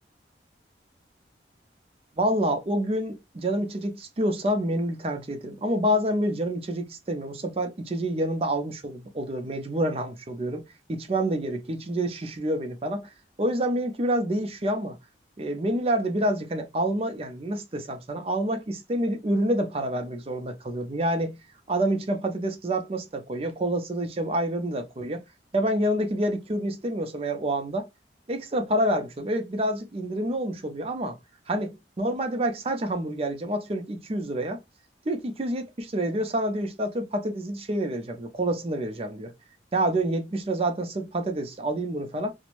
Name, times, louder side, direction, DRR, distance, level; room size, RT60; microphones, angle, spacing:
voice 1, 2.2-10.6 10.9-13.1 13.4-15.0 15.4-21.4 21.7-25.2 25.5-27.9 28.3-31.2 31.5-31.7 32.0-34.6 35.1-39.3 39.7-42.3, right 1 dB, 30° right, 0.5 m, -27 dB
2.5 x 2.0 x 3.0 m
head